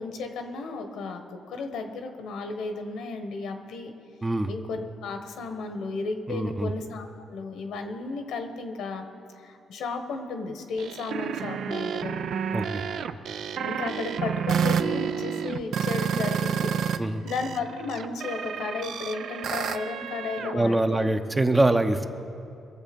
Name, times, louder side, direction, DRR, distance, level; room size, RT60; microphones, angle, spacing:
voice 1, 0.0-3.9 4.5-9.0 9.4-12.3 13.6-16.7 17.2-21.1, left 4 dB, 80° left, 6 dB, 1.3 m, -34 dB
voice 2, 6.3-6.7 12.5-12.8 17.0-17.2 20.5-22.0, right 2 dB, 20° right, 7 dB, 0.7 m, -24 dB
sound 1, 10.8-17.0 17.3-20.6, right 7 dB, 70° right, 0.5 m, -29 dB
21.5 x 7.4 x 5.3 m, 2.5 s
cardioid pair, 90°, 0 cm